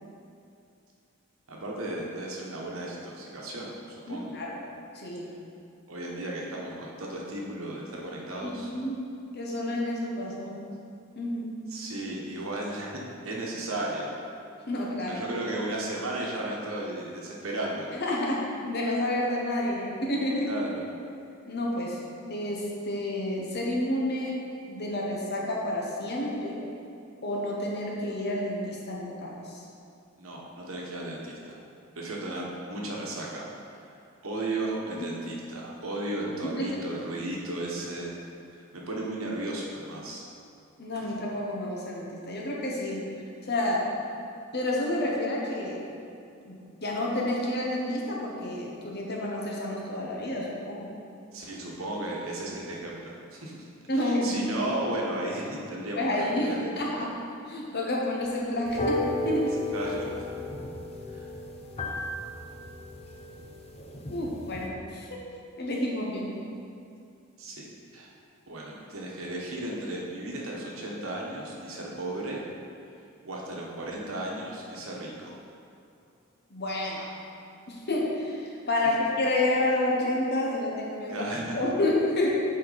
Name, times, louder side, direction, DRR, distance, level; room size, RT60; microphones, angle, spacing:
voice 1, 1.5-4.3 5.9-8.7 11.7-14.1 15.1-17.9 20.5-20.8 30.2-31.6 32.0-33.5 33.8-33.9 34.2-38.1 38.5-40.2 51.3-53.6 53.9-56.7 59.7-60.2 61.1-61.3 67.4-67.6 67.9-68.1 68.5-72.4 73.2-75.4 81.1-81.6, right 1 dB, 85° right, -3 dB, 1.2 m, -35 dB
voice 2, 4.1-4.6 4.9-5.3 8.4-9.0 9.3-10.7 11.1-11.6 14.7-15.2 17.9-20.5 21.5-22.0 22.3-24.4 24.7-26.6 27.2-29.6 35.0-35.1 36.4-36.7 40.8-43.1 43.5-43.9 44.5-45.8 46.4-50.9 53.9-54.5 56.0-57.1 57.5-59.6 64.1-65.2 65.6-66.4 76.5-77.1 77.7-82.4, left 1 dB, 55° left, -3 dB, 1.2 m, -29 dB
sound 1, 58.7-64.7, left 1 dB, 30° left, 0.6 m, -34 dB
7.8 x 4.5 x 4.1 m, 2.5 s
head